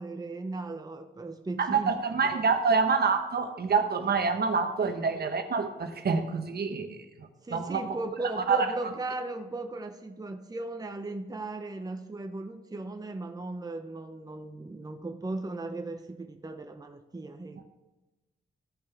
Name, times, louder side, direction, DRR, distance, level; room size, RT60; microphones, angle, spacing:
voice 1, 0.0-2.0 2.3-2.4 4.8-5.1 7.4-17.6, right 2 dB, 20° right, 6 dB, 0.8 m, -37 dB
voice 2, 1.6-7.8 8.5-8.7, right 5 dB, 50° right, 7 dB, 1.0 m, -27 dB
14.5 x 5.3 x 3.5 m, 1.1 s
supercardioid pair, 55°, 20 cm